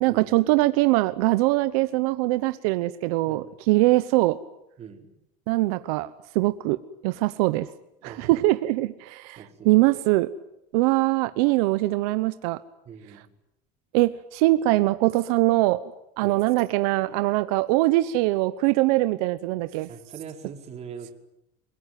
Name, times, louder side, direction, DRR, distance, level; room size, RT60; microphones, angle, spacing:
voice 1, 0.0-4.4 5.5-6.8 7.0-7.7 8.0-10.3 10.7-12.6 13.9-15.8 16.2-19.9, right 19 dB, 90° right, 13 dB, 1.0 m, -22 dB
voice 2, 4.8-5.1 8.0-8.5 9.4-9.9 12.8-13.3 16.2-16.4 19.9-21.1, right 7 dB, 35° right, 4 dB, 4.4 m, -42 dB
29.0 x 18.0 x 9.3 m, 0.83 s
cardioid pair, 140°, 19 cm